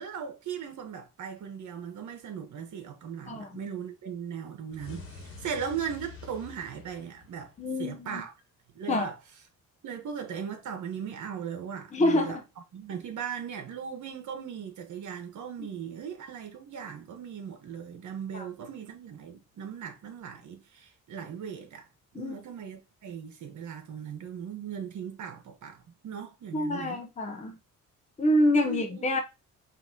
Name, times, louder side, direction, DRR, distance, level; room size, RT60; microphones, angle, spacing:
voice 1, 0.0-7.5 7.8-8.3 8.7-9.2 9.8-12.4 12.7-21.9 22.1-27.0 28.5-29.2, right 7 dB, 60° right, 1.2 m, -38 dB
sound 1, 4.7-7.9, left 4 dB, 40° left, 1.3 m, -47 dB
voice 2, 7.6-8.2 8.9-9.1 11.9-12.4 15.6-15.7 18.3-18.5 22.1-22.4 26.5-27.6 28.2-29.2, left 1 dB, 20° left, 0.7 m, -27 dB
5.7 x 2.8 x 2.8 m
cardioid pair, 140°, 32 cm